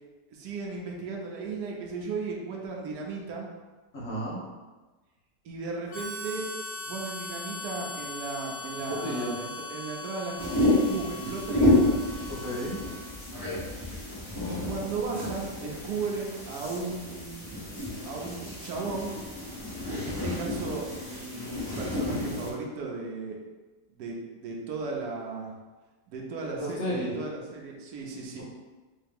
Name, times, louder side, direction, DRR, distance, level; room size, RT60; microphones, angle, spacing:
voice 1, 0.3-3.5 5.4-6.4 6.9-12.1 14.5-17.5 18.1-19.2 19.9-23.4 23.9-25.5 26.1-28.4, right 4 dB, 70° right, -1 dB, 1.2 m, -35 dB
voice 2, 3.9-4.4 8.9-9.3 12.3-12.8 26.6-27.2, equal, 50° left, -8 dB, 1.4 m, -32 dB
Harmonica, 5.9-13.2, left 2 dB, 90° left, 1.5 m, -40 dB
sound 1, 10.4-22.5, left 1 dB, 15° left, 1.4 m, -30 dB
3.6 x 2.9 x 3.6 m, 1.2 s
omnidirectional pair, 1.8 m